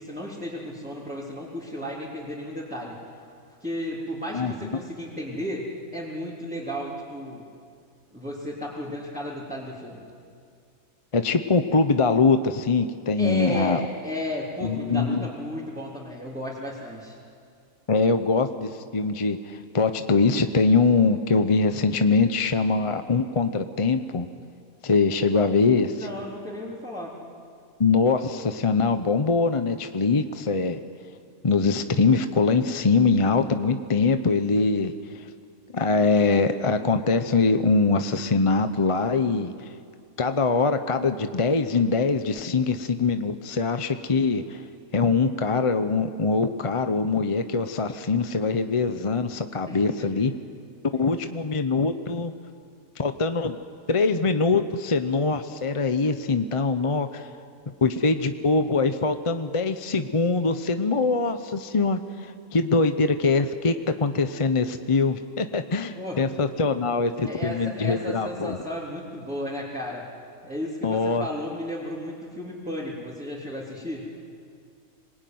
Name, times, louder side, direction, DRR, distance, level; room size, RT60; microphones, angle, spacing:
voice 1, 0.0-3.0 3.6-5.6 5.9-7.4 8.1-10.0 13.2-17.2 25.9-27.1 49.7-50.1 51.0-51.1 65.9-66.2 67.2-70.1 70.4-74.1, equal, 5° right, -7 dB, 3.5 m, -34 dB
voice 2, 4.3-4.7 11.1-13.8 14.6-15.3 17.9-24.3 24.8-26.1 27.8-30.8 31.4-35.2 35.7-39.5 40.2-44.6 44.9-50.3 51.0-52.3 53.0-53.6 53.9-57.3 57.8-68.6 70.8-71.2, left 4 dB, 30° left, 9 dB, 0.7 m, -23 dB
26.0 x 20.0 x 9.4 m, 2.3 s
omnidirectional pair, 1.5 m